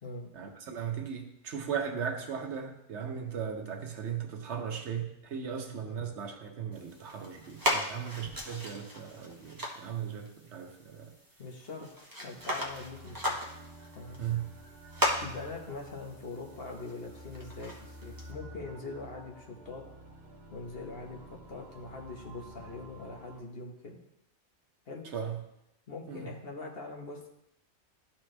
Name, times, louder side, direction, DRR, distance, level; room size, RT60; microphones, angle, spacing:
voice 1, 0.3-11.1 14.2-14.5 25.1-25.4 26.1-26.3, right 7 dB, 85° right, 4 dB, 1.2 m, -37 dB
voice 2, 5.5-6.0 11.4-11.9 12.2-13.4 13.9-14.2 15.2-19.8 20.5-24.0 24.9-25.0 25.9-27.3, left 3 dB, 60° left, 0 dB, 1.4 m, -42 dB
sound 1, 6.7-18.3, equal, 20° right, 1.0 m, -37 dB
sound 2, 12.4-23.4, right 1 dB, 70° right, 1.3 m, -50 dB
12.0 x 4.4 x 3.3 m, 0.84 s
omnidirectional pair, 1.1 m